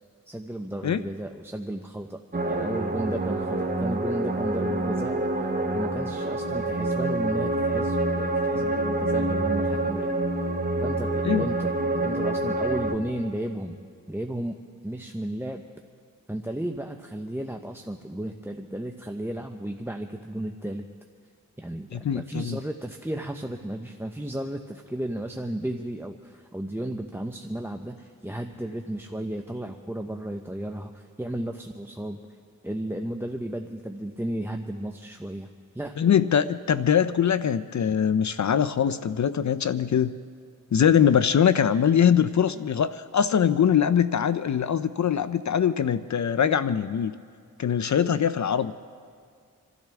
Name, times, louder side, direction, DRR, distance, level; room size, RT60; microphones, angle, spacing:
voice 1, 0.3-10.1 10.8-13.8 14.1-14.6 14.8-15.6 16.3-20.9 21.6-32.2 32.6-35.5 35.7-36.0, right 1 dB, 5° right, 5 dB, 1.0 m, -34 dB
sound 1, 2.3-12.9, right 2 dB, 25° right, 1.5 m, -27 dB
voice 2, 21.9-22.6 36.0-40.2 40.7-47.1 47.6-48.7, left 8 dB, 55° left, 13 dB, 0.6 m, -22 dB
28.0 x 12.5 x 3.6 m, 2.1 s
cardioid pair, 40°, 34 cm